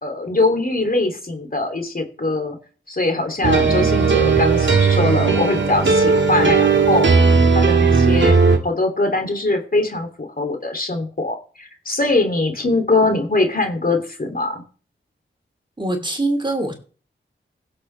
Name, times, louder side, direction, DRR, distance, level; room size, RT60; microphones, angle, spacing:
voice 1, 0.0-2.6 2.9-7.1 7.5-14.6, left 2 dB, 45° left, 4 dB, 2.9 m, -22 dB
sound 1, 3.4-8.6, right 4 dB, 65° right, 1.7 m, -16 dB
voice 2, 3.6-4.2 15.8-16.7, right 2 dB, 25° right, 4 dB, 3.0 m, -24 dB
16.0 x 7.6 x 3.4 m, 0.39 s
cardioid pair, 45°, 20 cm